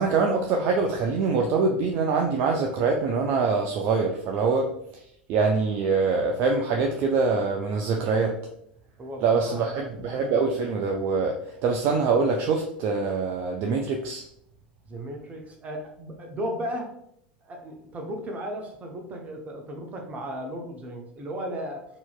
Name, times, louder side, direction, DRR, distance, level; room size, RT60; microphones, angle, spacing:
voice 1, 0.0-4.7 5.3-8.4 9.2-14.2, right 4 dB, 45° right, 2 dB, 0.4 m, -24 dB
voice 2, 9.0-10.0 14.9-16.9 17.4-21.9, equal, 25° right, 2 dB, 0.8 m, -35 dB
4.2 x 2.8 x 2.3 m, 0.73 s
figure-of-eight pair, 80°, 5 cm